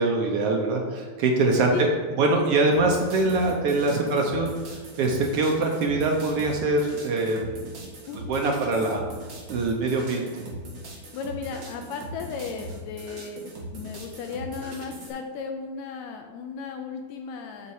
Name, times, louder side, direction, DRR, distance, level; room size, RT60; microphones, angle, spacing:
voice 1, 0.0-1.9 2.2-7.9 8.3-9.0 9.5-10.5, right 2 dB, 70° right, 1 dB, 1.4 m, -24 dB
sound 1, 2.7-15.1, right 1 dB, 45° right, 1.8 m, -40 dB
voice 2, 8.1-8.4 10.9-17.7, left 5 dB, 80° left, 4 dB, 1.8 m, -35 dB
8.5 x 4.2 x 4.8 m, 1.4 s
omnidirectional pair, 3.5 m